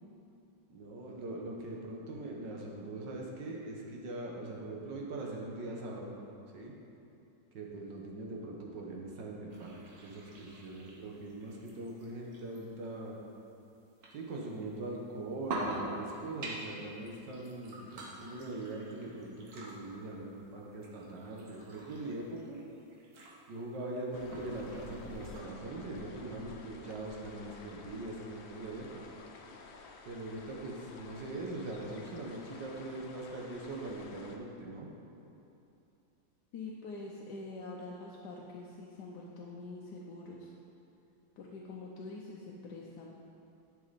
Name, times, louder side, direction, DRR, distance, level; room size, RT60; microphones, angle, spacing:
voice 1, 0.7-6.1 6.5-6.7 7.5-13.2 14.1-22.6 23.5-29.0 30.0-34.9, right 2 dB, 70° right, -2 dB, 1.7 m, -41 dB
sound 1, 9.5-25.4, right 2 dB, 55° right, 1.6 m, -47 dB
sound 2, 24.1-34.4, left 4 dB, 85° left, 1.5 m, -52 dB
voice 2, 36.5-40.5 41.4-43.1, left 3 dB, 65° left, -2 dB, 1.3 m, -45 dB
11.0 x 6.6 x 4.1 m, 2.8 s
omnidirectional pair, 2.1 m